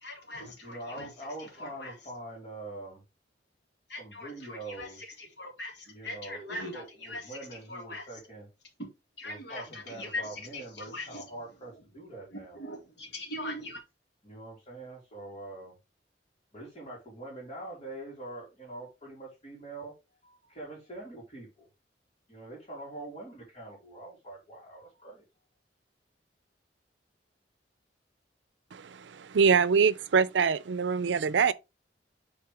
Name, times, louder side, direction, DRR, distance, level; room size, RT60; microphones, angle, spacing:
voice 1, 0.0-1.1 1.4-1.9 3.9-4.9 5.2-7.4 7.7-8.1 9.2-11.2 12.5-13.8, left 2 dB, 70° left, 2.3 m, -40 dB
voice 2, 0.6-3.0 4.0-5.0 5.9-8.5 9.2-12.6 14.2-15.7 16.5-19.9 20.2-21.7 22.3-25.2, right 2 dB, 35° left, 3.2 m, -44 dB
voice 3, 28.7-31.5, right 6 dB, 90° right, 0.5 m, -24 dB
7.7 x 4.2 x 3.4 m
head